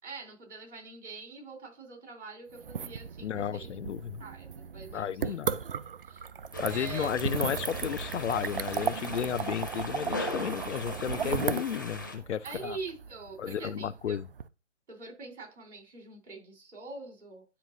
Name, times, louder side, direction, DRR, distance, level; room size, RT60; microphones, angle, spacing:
voice 1, 0.0-3.7 4.2-5.4 6.1-6.2 6.6-7.1 12.4-14.2 14.9-17.5, right 3 dB, 70° right, 3.6 m, -44 dB
sound 1, 2.5-14.4, right 7 dB, 50° right, 0.5 m, -36 dB
voice 2, 3.2-4.2 4.9-5.6 6.6-12.8 13.4-14.3, left 9 dB, 75° left, 0.5 m, -33 dB
sound 2, 6.5-12.2, left 2 dB, 15° left, 0.5 m, -40 dB
9.9 x 5.1 x 2.6 m
hypercardioid pair, 160°, 36 cm